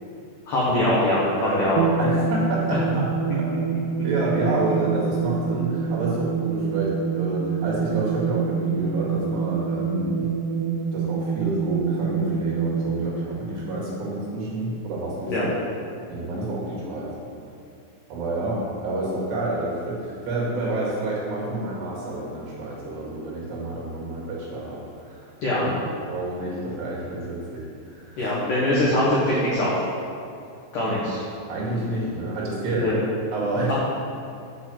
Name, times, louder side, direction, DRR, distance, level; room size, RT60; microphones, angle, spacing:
voice 1, 0.5-1.8 2.7-2.8 15.3-15.5 25.4-25.7 28.2-29.8 30.7-31.2 32.7-33.0 33.7-33.8, left 1 dB, 75° left, -6 dB, 1.9 m, -22 dB
voice 2, 1.4-3.1 4.0-10.3 10.9-15.5 16.1-17.1 18.1-25.3 25.6-25.7 26.1-28.2 30.9-31.0 31.5-32.9 33.3-33.7, right 2 dB, 60° right, -5 dB, 3.8 m, -29 dB
sound 1, 1.8-14.6, right 6 dB, 85° right, 3.5 m, -26 dB
8.4 x 6.3 x 7.6 m, 2.5 s
omnidirectional pair, 5.9 m